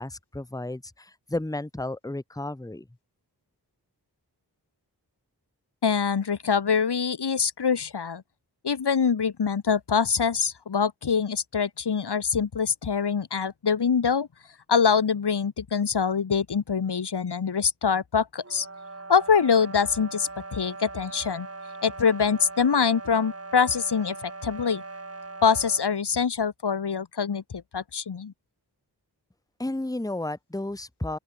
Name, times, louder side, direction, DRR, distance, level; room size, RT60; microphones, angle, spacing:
voice 1, 0.0-2.9 29.6-31.2, left 2 dB, 10° left, 1.2 m, -32 dB
voice 2, 5.8-8.2 8.6-14.3 14.7-18.7 19.1-21.5 21.8-24.8 25.4-28.3, left 6 dB, 80° left, 1.5 m, -24 dB
sound 1, 18.4-25.9, right 3 dB, 35° right, 2.2 m, -40 dB
open air
wide cardioid pair, 50°, 40 cm